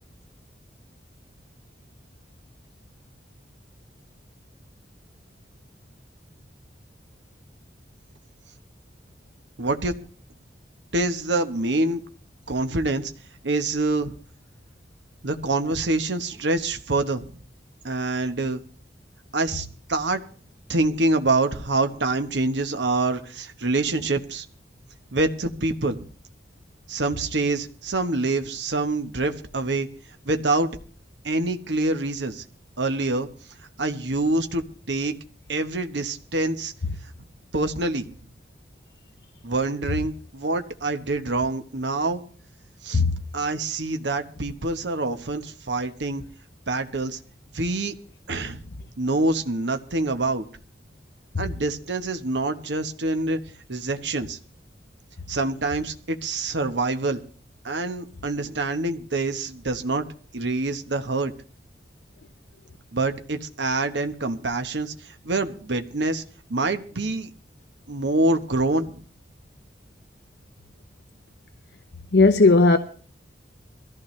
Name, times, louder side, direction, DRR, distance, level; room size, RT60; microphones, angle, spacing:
voice 1, 9.6-10.0 10.9-12.0 12.5-13.1 13.4-14.1 15.2-17.3 17.8-18.6 19.3-20.2 20.7-24.4 25.1-26.1 26.9-29.9 30.2-30.8 31.2-32.4 32.8-33.3 33.6-35.1 35.5-36.7 37.0-37.1 37.5-38.1 39.4-42.2 42.8-43.0 43.3-46.2 46.7-47.2 47.5-47.9 48.3-48.6 49.0-50.4 51.4-53.4 53.7-54.4 55.3-57.2 57.6-60.1 60.3-61.3 62.9-66.2 66.5-67.3 67.9-69.0, right 2 dB, 75° right, 1.2 m, -26 dB
voice 2, 72.1-72.8, left 3 dB, 65° left, 0.8 m, -15 dB
22.0 x 14.5 x 3.2 m
head